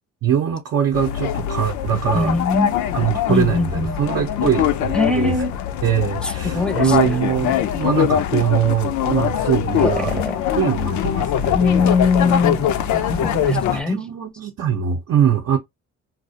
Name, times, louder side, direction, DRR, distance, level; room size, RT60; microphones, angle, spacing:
voice 1, 0.2-2.3 2.9-5.3 5.8-10.2 10.5-11.8 13.5-15.6, right 8 dB, 50° right, 0.6 m, -22 dB
sound 1, 0.9-13.8, left 10 dB, 70° left, 0.4 m, -22 dB
voice 2, 2.1-2.7 3.3-4.0 4.9-5.5 6.2-7.1 9.8-10.3 11.5-14.0, left 4 dB, 5° left, 0.6 m, -21 dB
2.4 x 2.0 x 2.7 m
cardioid pair, 90°, 30 cm